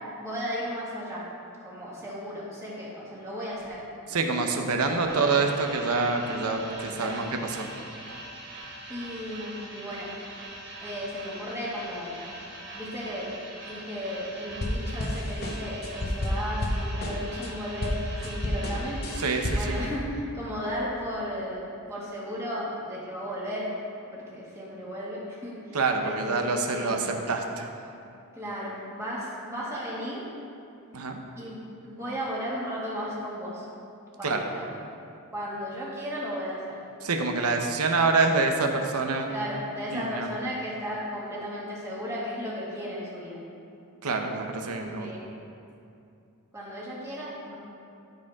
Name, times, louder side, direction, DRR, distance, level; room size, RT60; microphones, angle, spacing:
voice 1, 0.2-1.2 1.6-3.8 4.1-4.3 4.9-5.3 6.9-7.2 8.9-10.1 10.8-12.2 12.7-13.3 13.6-19.0 19.5-23.7 24.1-27.1 28.4-30.3 31.4-33.7 34.2-34.7 35.3-36.8 39.3-43.4 44.7-45.3 46.5-47.5, equal, 15° right, -7 dB, 2.0 m, -35 dB
voice 2, 4.1-7.7 19.2-19.8 25.7-27.7 30.9-31.2 34.2-34.4 37.0-39.3 39.9-40.3 44.0-45.1, right 3 dB, 80° right, 3 dB, 0.8 m, -26 dB
sound 1, 5.1-19.8, right 2 dB, 50° right, 1.5 m, -42 dB
sound 2, 14.5-17.5 17.8-19.8, left 1 dB, 45° left, 0.9 m, -30 dB
14.5 x 5.2 x 3.6 m, 2.6 s
head